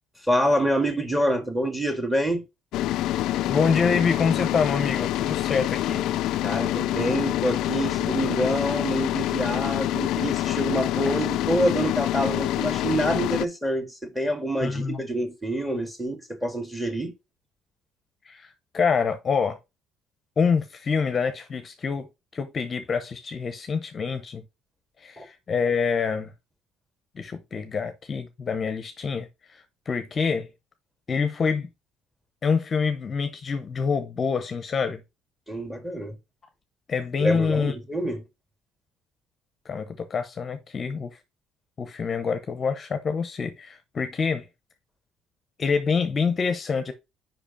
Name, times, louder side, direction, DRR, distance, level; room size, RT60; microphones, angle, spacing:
voice 1, 0.3-2.4 6.4-17.1 25.2-25.3 35.5-36.2 37.2-38.2, right 1 dB, 5° right, 1.9 m, -26 dB
sound 1, 2.7-13.5, left 14 dB, 70° left, 0.3 m, -26 dB
voice 2, 3.5-6.1 14.6-15.0 18.2-19.6 20.4-22.1 22.3-24.4 25.0-26.3 27.2-30.5 31.1-31.7 32.4-35.0 36.9-37.7 39.7-41.2 41.8-44.5 45.6-46.9, left 5 dB, 35° left, 0.8 m, -26 dB
5.3 x 5.0 x 5.2 m
cardioid pair, 110°, 0 cm